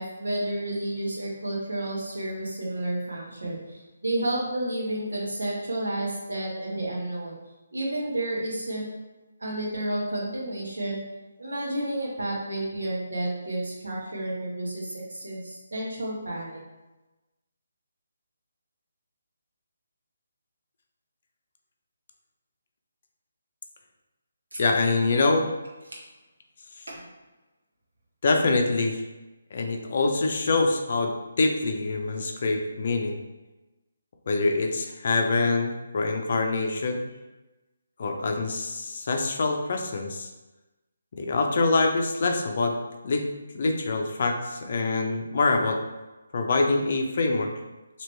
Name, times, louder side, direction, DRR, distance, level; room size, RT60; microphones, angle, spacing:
voice 1, 0.0-7.4 7.7-8.9 9.4-11.0 11.4-16.6 24.5-24.6 26.9-27.0, right 1 dB, 80° right, -3 dB, 1.2 m, -31 dB
voice 2, 24.6-25.5 28.2-29.0 29.5-33.2 34.3-37.0 38.0-40.3 41.2-42.8 43.0-43.2 43.5-45.8 46.3-47.5, left 3 dB, 50° left, 3 dB, 0.5 m, -25 dB
2.9 x 2.9 x 3.2 m, 1.1 s
figure-of-eight pair, 150°, 0 cm